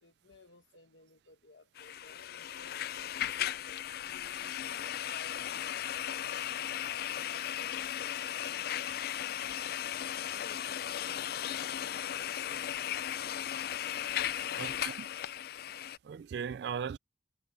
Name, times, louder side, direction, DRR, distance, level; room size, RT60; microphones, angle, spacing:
voice 1, 0.0-2.7 3.3-6.3 6.8-7.9 8.4-9.0 10.2-13.0, left 3 dB, 80° left, 1.1 m, -59 dB
sound 1, 1.8-16.0, left 10 dB, 55° left, 0.4 m, -36 dB
voice 2, 14.6-15.1 16.0-17.0, right 7 dB, 65° right, 0.3 m, -38 dB
head